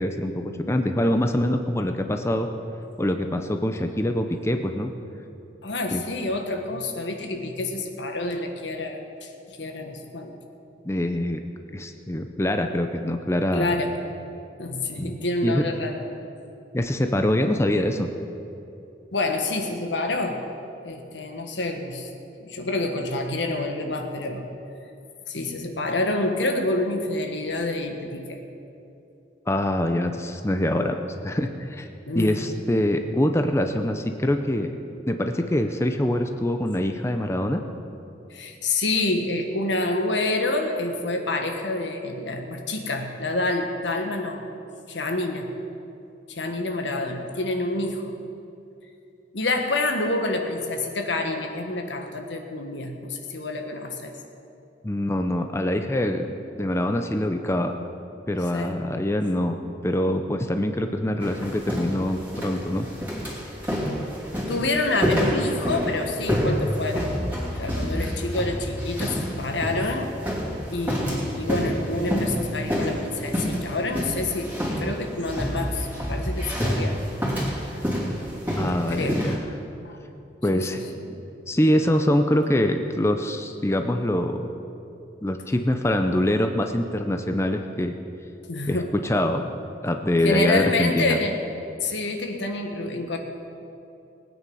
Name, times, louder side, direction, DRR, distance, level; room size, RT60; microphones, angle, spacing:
voice 1, 0.0-2.5 3.0-4.9 5.9-6.0 10.8-11.4 11.7-13.7 15.0-15.1 15.4-15.6 16.7-18.1 29.5-31.0 31.2-31.9 32.1-34.7 35.1-37.6 54.8-57.7 58.3-59.6 59.8-62.9 78.6-79.4 80.4-80.8 81.5-84.5 85.2-87.9 88.7-89.5 89.8-91.2, left 1 dB, 15° left, 5 dB, 0.6 m, -24 dB
voice 2, 5.6-10.3 13.5-14.0 14.6-16.0 19.1-20.4 20.8-22.1 22.4-24.5 25.3-28.4 32.1-32.5 38.3-44.5 44.9-45.5 46.3-48.1 49.3-54.2 58.5-58.8 64.5-67.2 67.5-70.1 70.7-74.5 74.8-77.0 77.4-77.5 78.9-79.3 79.8-80.0 80.5-81.2 88.5-88.9 90.2-91.4 91.8-93.2, left 2 dB, 85° left, 4 dB, 1.5 m, -27 dB
sound 1, 61.2-79.4, equal, 10° right, 2.9 m, -28 dB
20.0 x 9.2 x 5.5 m, 2.7 s
head